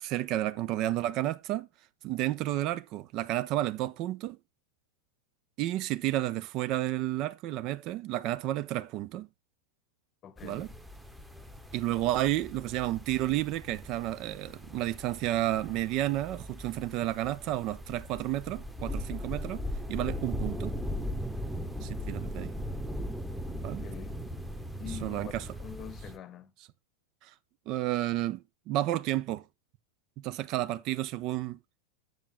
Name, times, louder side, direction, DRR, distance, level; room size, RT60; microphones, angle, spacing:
voice 1, 0.0-1.7 2.0-4.4 5.6-9.3 10.4-10.7 11.7-19.6 19.9-20.7 21.8-22.5 23.6-23.8 25.0-25.4 27.2-27.3 27.7-29.4 30.2-31.6, right 14 dB, 40° right, 0.5 m, -31 dB
voice 2, 10.2-10.7 23.6-24.2 24.8-26.5, left 9 dB, 30° left, 0.9 m, -45 dB
sound 1, 10.4-26.2, equal, 5° right, 1.1 m, -39 dB
7.7 x 7.2 x 3.6 m
figure-of-eight pair, 90°, 0 cm